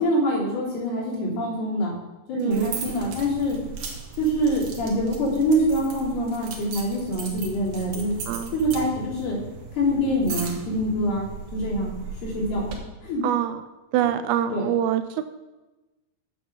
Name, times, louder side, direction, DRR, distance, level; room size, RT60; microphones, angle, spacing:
voice 1, 0.0-1.9 2.3-3.6 4.2-8.1 8.5-9.4 9.7-11.3 11.5-12.7 13.0-13.3 13.9-14.1 14.5-14.6, equal, 75° left, -6 dB, 5.1 m, -25 dB
voice 2, 2.3-2.8 8.3-8.5 13.2-13.6 13.9-15.2, right 11 dB, 80° right, 10 dB, 2.3 m, -25 dB
sound 1, 2.5-12.8, right 6 dB, 60° right, 2.4 m, -37 dB
8.5 x 7.5 x 6.8 m, 1.1 s
omnidirectional pair, 4.6 m